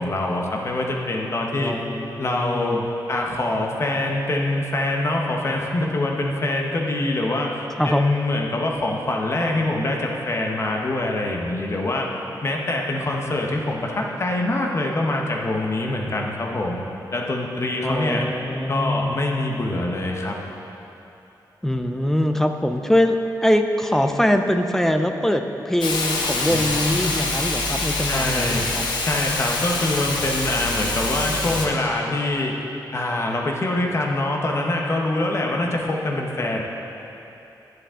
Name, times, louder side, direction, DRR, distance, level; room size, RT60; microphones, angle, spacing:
voice 1, 0.0-1.7 2.2-12.1 12.4-16.8 17.1-18.3 18.7-20.4 26.5-26.6 28.1-28.7 29.0-32.6 32.9-36.6, left 2 dB, 40° left, 0 dB, 1.0 m, -24 dB
voice 2, 1.6-2.8 7.8-8.1 17.8-19.2 21.6-23.2 23.4-28.9, left 1 dB, 5° left, 6 dB, 0.4 m, -23 dB
Hiss, 25.8-31.7, left 3 dB, 85° left, 1.0 m, -25 dB
10.0 x 7.7 x 3.7 m, 2.9 s
wide cardioid pair, 130°, 7 cm